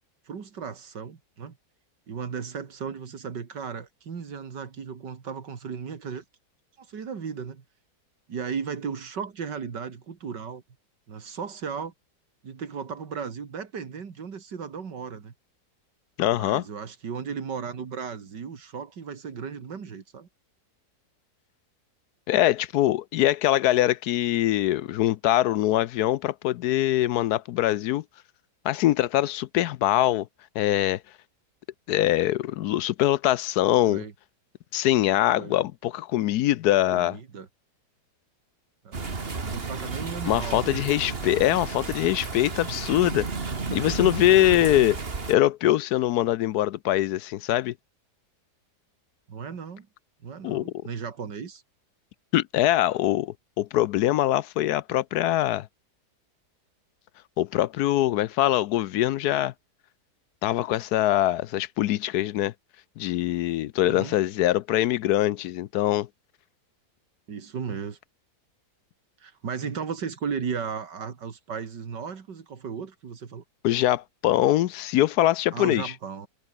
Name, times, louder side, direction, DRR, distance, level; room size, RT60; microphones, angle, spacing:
voice 1, 0.3-1.6 2.1-6.2 6.8-7.6 8.3-10.6 11.1-11.9 12.4-15.3 16.3-20.3 33.8-34.1 35.3-35.6 36.9-37.5 38.8-39.1 39.4-41.1 44.6-44.8 49.3-49.9 50.2-51.6 63.8-64.2 67.3-68.0 69.2-73.4 75.5-76.3, right 6 dB, 85° right, 2.7 m, -35 dB
voice 2, 16.2-16.6 22.3-28.0 28.6-30.3 30.6-31.0 31.9-34.0 34.7-37.2 40.2-43.3 43.7-45.0 45.3-47.7 50.4-50.7 52.3-55.7 57.4-59.5 60.4-62.5 63.0-66.1 73.6-75.9, left 14 dB, 75° left, 1.1 m, -23 dB
sound 1, 38.9-45.3, right 4 dB, 35° right, 2.1 m, -32 dB
omnidirectional pair, 1.8 m